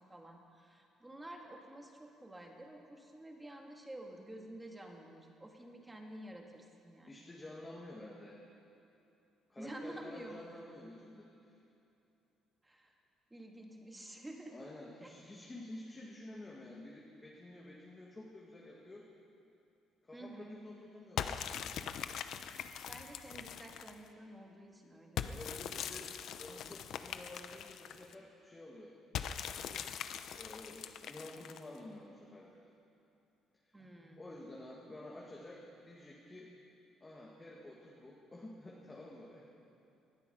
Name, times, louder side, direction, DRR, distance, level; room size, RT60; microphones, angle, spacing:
voice 1, 0.1-7.1 9.6-10.7 12.6-13.0 13.3-14.6 15.0-15.1 20.1-20.7 22.8-25.2 31.3-31.5 33.7-34.2, right 1 dB, 10° right, 1 dB, 1.8 m, -50 dB
voice 2, 7.1-8.4 9.5-11.6 14.5-19.1 20.0-21.7 25.3-26.1 26.4-29.0 30.3-32.7 34.2-36.5 37.0-39.4, left 1 dB, 15° left, -4 dB, 2.0 m, -50 dB
sound 1, 21.2-24.1 25.2-28.1 29.1-31.8, left 8 dB, 60° left, 0.7 m, -42 dB
19.5 x 13.0 x 5.6 m, 2.8 s
cardioid pair, 140°, 0 cm